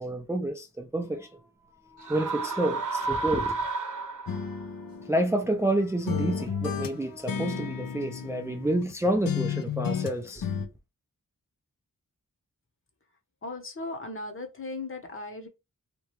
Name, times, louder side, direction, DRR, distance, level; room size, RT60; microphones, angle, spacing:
voice 1, 0.0-3.7 5.0-10.5, right 1 dB, 10° right, 0.4 m, -29 dB
sound 1, 2.0-4.6, right 4 dB, 60° right, 0.8 m, -31 dB
sound 2, 4.3-5.7 6.1-8.9 9.3-10.7, left 7 dB, 80° left, 0.5 m, -32 dB
voice 2, 13.4-15.5, left 2 dB, 35° left, 0.8 m, -37 dB
2.9 x 2.3 x 2.9 m
wide cardioid pair, 75°, 35 cm